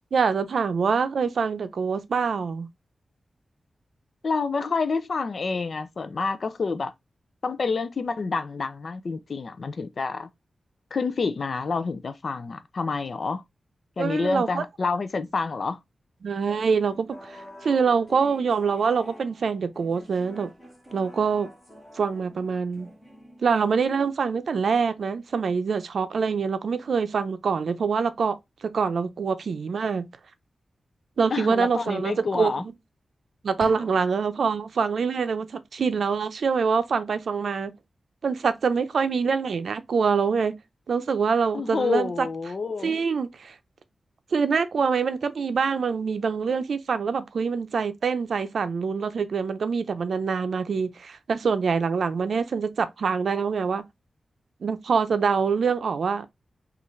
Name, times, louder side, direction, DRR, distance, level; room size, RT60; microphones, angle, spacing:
voice 1, 0.1-2.7 14.0-14.6 16.2-20.5 20.9-21.5 22.0-22.9 23.4-28.4 28.6-30.1 31.2-32.5 33.4-37.7 38.2-40.6 40.9-42.3 42.8-43.5 44.3-53.8 54.6-56.3, right 5 dB, 75° right, 0.5 m, -25 dB
voice 2, 4.2-6.9 7.4-10.3 10.9-13.4 14.0-15.8 31.3-32.6 41.5-43.0, left 4 dB, 55° left, 0.4 m, -28 dB
sound 1, 16.4-23.8, equal, 5° left, 1.2 m, -47 dB
sound 2, 33.6-34.6, right 1 dB, 15° right, 0.6 m, -42 dB
5.5 x 2.5 x 3.1 m
wide cardioid pair, 135°, 0 cm